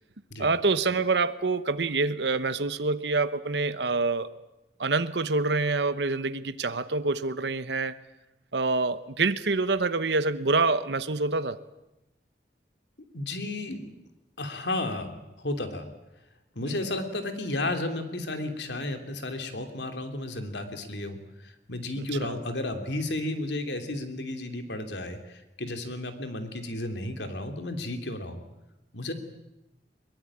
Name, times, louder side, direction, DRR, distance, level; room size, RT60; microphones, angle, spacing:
voice 1, 0.4-4.3 4.8-7.9 8.5-11.6 16.6-16.8 22.0-22.4, right 3 dB, 80° right, 12 dB, 1.0 m, -26 dB
voice 2, 13.1-13.9 14.4-15.9 16.5-28.4 28.9-29.1, left 2 dB, 80° left, 6 dB, 3.0 m, -33 dB
22.5 x 22.0 x 8.8 m, 0.93 s
head